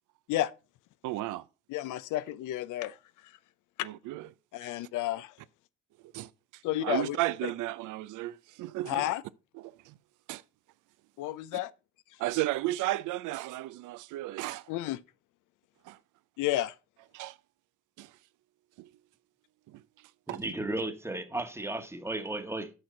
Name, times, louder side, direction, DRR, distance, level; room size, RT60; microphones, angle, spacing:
voice 1, 1.0-1.4 3.8-4.3 6.1-6.3 6.8-9.0 9.9-10.0 10.3-10.4 12.2-14.7 15.9-16.0 17.1-17.4 18.0-18.1 18.8-18.9 19.7-19.8 20.3-20.4, right 16 dB, 85° right, 0.5 m, -33 dB
voice 2, 1.7-3.0 3.8-3.9 4.5-5.3 6.6-7.2 8.9-9.2 11.2-11.7 14.7-15.0 16.4-16.7, left 14 dB, 90° left, 0.5 m, -31 dB
voice 3, 20.3-22.7, right 2 dB, 10° right, 1.1 m, -34 dB
6.7 x 6.0 x 5.2 m
cardioid pair, 90°, 30 cm